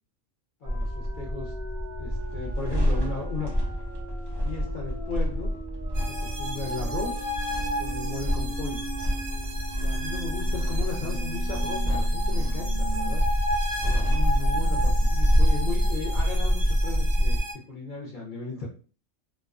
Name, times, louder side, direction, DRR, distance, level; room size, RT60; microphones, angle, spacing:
voice 1, 0.6-1.5 2.0-3.5 4.4-5.6 6.1-7.3 7.8-8.8 9.8-13.3 13.8-17.4 17.7-18.7, left 4 dB, 55° left, -3 dB, 0.5 m, -36 dB
sound 1, 0.6-17.4, equal, 25° right, 0.6 m, -26 dB
sound 2, 0.6-13.1 13.5-13.6 13.9-16.6, right 4 dB, 60° right, 0.7 m, -42 dB
sound 3, 5.9-17.5, equal, 90° right, 1.0 m, -35 dB
2.3 x 2.2 x 2.4 m, 0.37 s
omnidirectional pair, 1.4 m